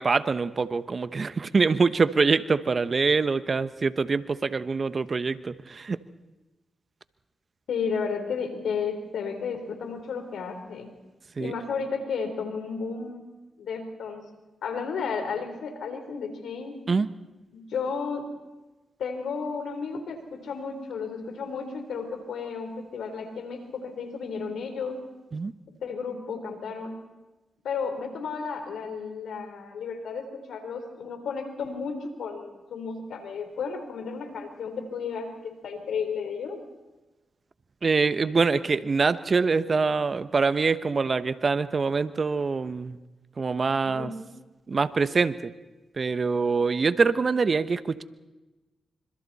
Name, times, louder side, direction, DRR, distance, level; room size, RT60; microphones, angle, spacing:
voice 1, 0.0-6.0 11.4-11.5 16.9-17.1 25.3-25.5 37.8-43.0 43.4-44.1 44.7-45.5 46.0-48.0, right 4 dB, 50° right, 13 dB, 1.1 m, -24 dB
voice 2, 7.7-10.9 11.4-13.2 13.6-14.2 14.6-16.8 17.5-18.3 19.0-25.0 25.8-27.0 27.6-36.6 43.9-44.2, left 5 dB, 80° left, 6 dB, 3.9 m, -33 dB
27.5 x 26.0 x 4.3 m, 1.1 s
supercardioid pair, 45°, 0 cm